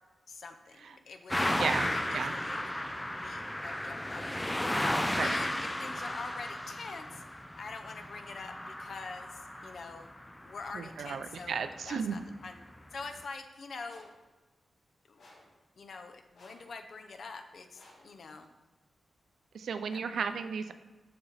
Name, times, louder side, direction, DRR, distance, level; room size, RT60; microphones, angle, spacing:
voice 1, 0.3-1.5 1.8-2.6 3.2-4.6 5.0-7.2 7.6-10.1 10.4-12.6 12.9-14.1 15.1-15.2 15.8-18.5 19.9-20.4, left 4 dB, 60° left, 6 dB, 0.7 m, -45 dB
sound 1, 1.3-10.6 11.8-11.9 12.8-12.9, left 1 dB, 10° left, 0.4 m, -34 dB
voice 2, 10.7-12.2 19.5-20.7, right 6 dB, 85° right, 9 dB, 0.5 m, -34 dB
sound 2, 13.8-14.2 15.2-15.6 16.3-16.7 17.7-18.1, left 1 dB, 75° left, 2.8 m, -57 dB
12.5 x 4.3 x 4.1 m, 1.2 s
wide cardioid pair, 150°, 0 cm